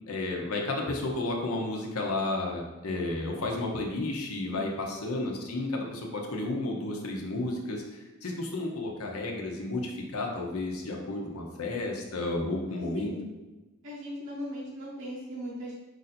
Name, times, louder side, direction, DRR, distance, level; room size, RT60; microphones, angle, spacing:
voice 1, 0.1-13.1, left 2 dB, 80° left, 0 dB, 0.7 m, -32 dB
voice 2, 4.4-4.8 12.7-13.3 13.8-15.8, equal, 60° right, -5 dB, 0.8 m, -39 dB
4.8 x 2.6 x 4.2 m, 1.1 s
head